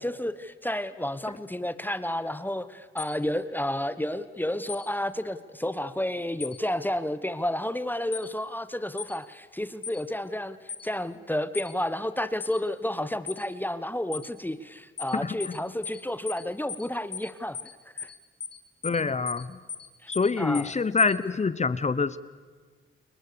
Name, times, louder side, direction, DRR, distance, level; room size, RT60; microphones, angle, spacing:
voice 1, 0.0-17.6 17.9-18.1 20.0-20.1 20.4-20.7, left 1 dB, 10° left, 13 dB, 1.1 m, -31 dB
sound 1, 3.0-3.1 4.7-4.9 6.4-6.6 8.1-8.3 9.0-9.1 9.8-10.0 10.7-10.9 11.5-11.7 12.4-12.6 13.3-13.4 14.1-14.3 15.0-15.1 15.4-15.6 15.8-16.0 16.3-16.4 16.7-16.9 17.1-17.3 17.5-17.7 18.0-18.1 18.4-18.6 18.8-19.0 19.3-19.4 19.7-19.9 20.1-20.3 20.5-20.7 21.0-21.1, left 6 dB, 55° left, 2.0 m, -37 dB
voice 2, 15.1-15.6 18.8-19.6 20.1-22.2, left 4 dB, 35° left, 16 dB, 1.0 m, -26 dB
29.5 x 22.5 x 6.9 m, 1.5 s
cardioid pair, 75°, 21 cm